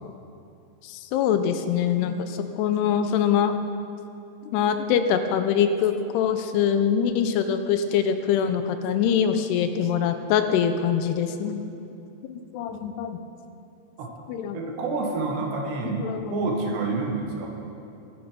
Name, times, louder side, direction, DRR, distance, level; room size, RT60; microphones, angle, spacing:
voice 1, 0.8-3.5 4.5-11.6 12.5-13.2 14.3-14.6 15.8-16.5, left 8 dB, 85° left, 8 dB, 2.7 m, -24 dB
voice 2, 14.5-17.5, right 3 dB, 80° right, 1 dB, 3.7 m, -28 dB
23.0 x 8.1 x 5.1 m, 2.8 s
omnidirectional pair, 4.9 m